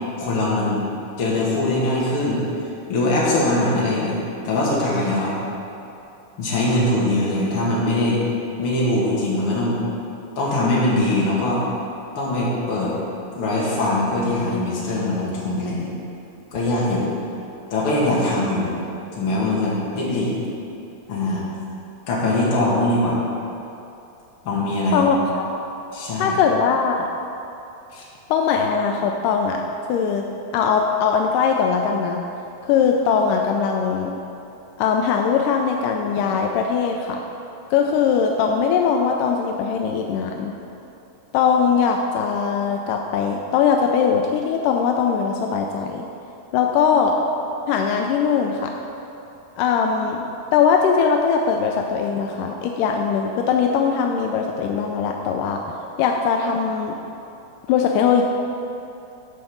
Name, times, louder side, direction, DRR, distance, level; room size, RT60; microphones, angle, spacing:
voice 1, 0.2-0.9 1.2-2.5 2.9-4.2 4.4-5.3 6.4-8.2 8.6-9.8 10.4-11.6 12.2-12.9 13.3-15.9 16.5-17.1 17.7-18.7 19.2-20.4 21.1-21.4 22.1-23.2 24.4-25.0 25.9-26.4 27.9-28.0, left 1 dB, 45° left, -5 dB, 2.3 m, -22 dB
voice 2, 24.9-25.6 26.2-27.1 28.3-29.6 29.9-30.2 30.5-32.2 32.6-34.1 34.8-37.2 37.7-40.5 41.3-46.1 46.5-47.2 47.7-48.7 49.6-50.3 50.5-55.6 56.0-57.0 57.7-58.2, left 6 dB, 85° left, 2 dB, 1.8 m, -20 dB
10.0 x 5.3 x 7.1 m, 2.9 s
omnidirectional pair, 4.4 m